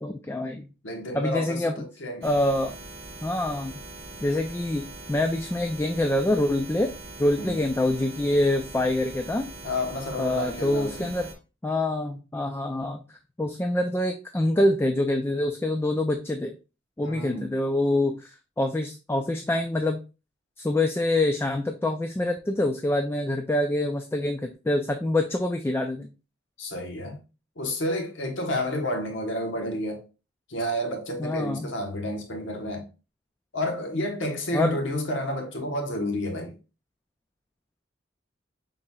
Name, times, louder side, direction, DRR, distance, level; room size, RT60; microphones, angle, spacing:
voice 1, 0.0-0.7 1.1-1.8 2.2-2.7 3.2-3.7 4.2-6.9 7.2-9.5 10.2-11.3 11.6-16.5 17.0-20.0 20.6-26.1 31.2-31.7 34.5-34.8, left 1 dB, 10° left, 0.3 m, -26 dB
voice 2, 0.8-2.3 7.4-7.5 9.6-11.1 17.0-17.5 26.6-27.2 27.6-30.0 30.5-32.8 33.5-36.6, left 1 dB, 75° left, 1.1 m, -30 dB
sound 1, 2.2-11.3, right 2 dB, 55° right, 1.2 m, -42 dB
5.5 x 3.8 x 2.3 m
head